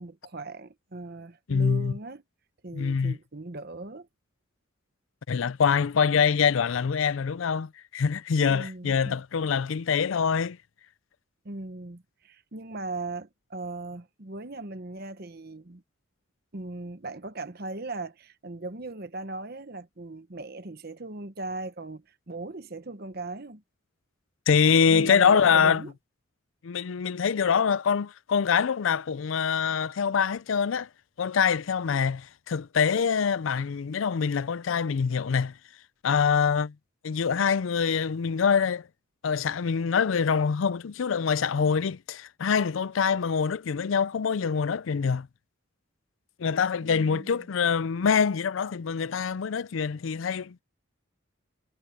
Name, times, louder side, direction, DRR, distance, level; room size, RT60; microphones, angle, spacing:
voice 1, 0.0-2.2 2.6-4.1 8.5-9.2 11.4-15.8 16.5-23.6 24.9-25.9 46.8-47.5, right 2 dB, 50° right, 1.1 m, -38 dB
voice 2, 1.5-1.9 2.7-3.2 5.3-10.6 24.5-25.8 26.6-30.9 31.2-35.5 36.0-36.7 37.0-38.9 39.2-45.3 46.4-50.6, left 6 dB, 75° left, 0.4 m, -25 dB
head